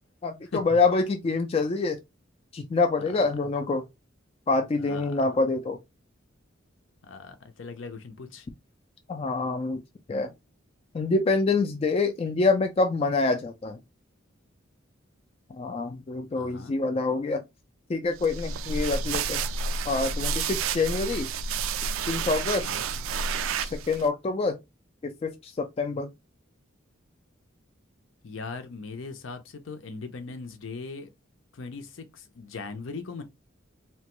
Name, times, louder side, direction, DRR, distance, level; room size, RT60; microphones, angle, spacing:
voice 1, 0.2-2.0 2.5-3.8 4.5-5.8 9.1-9.8 10.1-10.3 10.9-13.8 15.5-17.4 17.9-19.4 19.9-21.3 22.1-22.7 23.6-24.6 25.0-26.1, left 3 dB, 30° left, 0.3 m, -26 dB
voice 2, 3.0-3.3 4.8-5.2 7.0-8.5 16.3-16.7 22.6-22.9 28.2-31.1 31.5-33.2, left 4 dB, 75° left, 0.6 m, -39 dB
sound 1, 18.2-24.1, right 5 dB, 90° right, 0.3 m, -30 dB
2.9 x 2.2 x 2.9 m
head